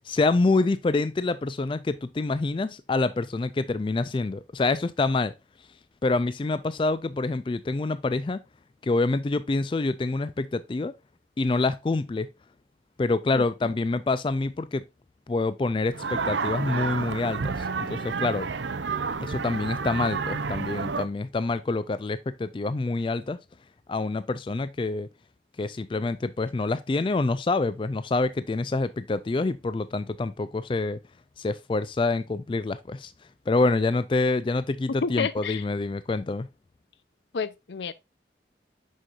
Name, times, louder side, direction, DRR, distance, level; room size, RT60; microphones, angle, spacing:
voice 1, 0.1-5.3 6.0-8.4 8.8-10.9 11.4-12.3 13.0-14.8 15.3-18.5 19.2-23.4 23.9-25.1 25.6-31.0 31.4-33.1 33.5-36.5, left 3 dB, 30° left, 0.3 m, -26 dB
sound 1, 15.9-21.1, right 5 dB, 85° right, 0.6 m, -30 dB
voice 2, 35.0-35.6 37.3-37.9, left 5 dB, 80° left, 0.5 m, -29 dB
6.3 x 6.2 x 2.4 m
head